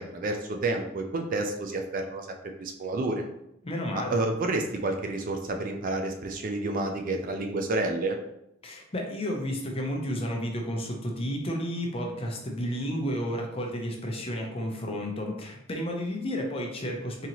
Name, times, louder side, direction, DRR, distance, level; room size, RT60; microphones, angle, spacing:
voice 1, 0.0-3.3 4.1-8.2, right 2 dB, 40° right, 4 dB, 0.4 m, -30 dB
voice 2, 3.6-4.1 8.6-17.3, equal, 30° left, 1 dB, 0.6 m, -32 dB
3.9 x 2.9 x 2.9 m, 0.80 s
head